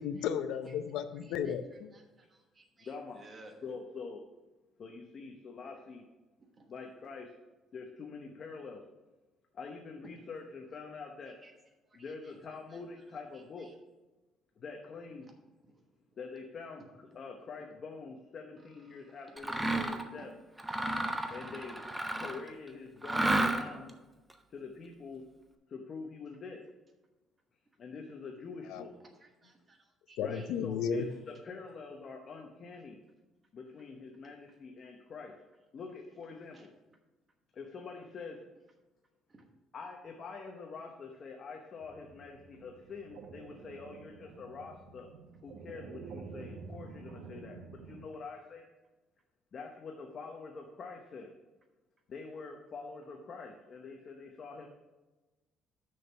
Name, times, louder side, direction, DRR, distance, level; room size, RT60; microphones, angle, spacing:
voice 1, 0.0-1.9 28.7-28.8 30.2-31.1, left 7 dB, 80° left, 10 dB, 0.6 m, -34 dB
voice 2, 1.2-1.5 1.9-3.5 6.6-6.7 11.4-11.5 11.9-12.0 13.6-13.7 15.7-15.8 18.9-19.0 20.2-20.3 29.2-30.5 36.5-36.6 39.3-39.4, right 2 dB, 20° right, 3 dB, 1.2 m, -57 dB
voice 3, 2.8-4.2 4.8-6.0 6.7-7.3 7.7-8.8 9.5-11.4 11.9-13.7 14.6-15.3 16.2-20.3 21.3-21.8 22.2-24.0 24.5-25.2 25.7-26.6 27.8-28.9 30.2-33.0 33.5-35.4 35.7-36.7 37.5-38.4 39.7-45.1 45.4-48.7 49.5-51.3 52.1-54.7, left 4 dB, 35° left, 1 dB, 0.8 m, -45 dB
Mechanisms, 19.4-20.1 20.6-22.5 23.0-23.9, right 1 dB, 5° right, 0.6 m, -32 dB
sound 1, 41.8-48.1, right 5 dB, 80° right, 0.7 m, -49 dB
6.3 x 6.1 x 5.6 m, 1.2 s
cardioid pair, 165°, 0 cm